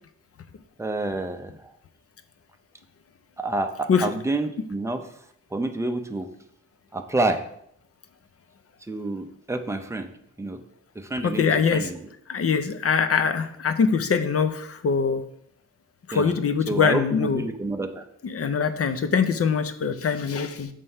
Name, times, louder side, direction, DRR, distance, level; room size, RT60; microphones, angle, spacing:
voice 1, 0.8-1.5 3.4-5.0 5.5-6.3 6.9-7.4 8.9-10.1 10.4-10.6 11.0-12.0 16.1-16.3 16.7-18.0, right 2 dB, 10° right, 5 dB, 0.5 m, -28 dB
voice 2, 11.2-11.9 12.3-15.2 16.1-17.4 18.2-20.7, left 6 dB, 50° left, 9 dB, 0.6 m, -23 dB
7.3 x 3.3 x 5.4 m, 0.72 s
wide cardioid pair, 135°, 30 cm